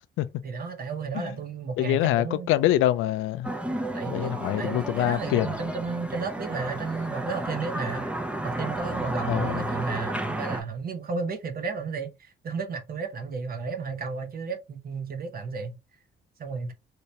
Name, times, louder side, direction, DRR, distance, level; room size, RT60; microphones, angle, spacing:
voice 1, 0.4-2.5 3.9-8.1 8.4-15.7 16.4-16.7, right 4 dB, 50° right, 0.8 m, -33 dB
voice 2, 1.8-3.5 4.1-5.5 9.3-9.6, left 14 dB, 90° left, 0.4 m, -25 dB
sound 1, 3.4-10.6, right 1 dB, 5° right, 0.6 m, -32 dB
2.9 x 2.8 x 3.2 m
cardioid pair, 90°, 20 cm